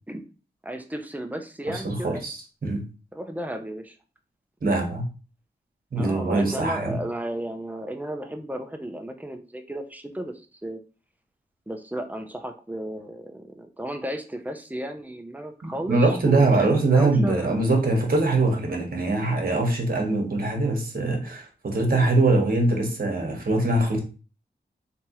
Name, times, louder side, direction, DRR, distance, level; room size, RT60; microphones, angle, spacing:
voice 1, 0.6-2.2 3.1-4.0 5.9-10.3 10.6-10.8 11.7-17.7, right 1 dB, 10° right, 5 dB, 0.6 m, -34 dB
voice 2, 1.7-2.4 2.6-2.8 4.6-5.0 5.9-7.0 15.6-24.0, right 2 dB, 50° right, 2 dB, 1.2 m, -22 dB
3.4 x 2.9 x 2.9 m, 0.34 s
wide cardioid pair, 65°, 18 cm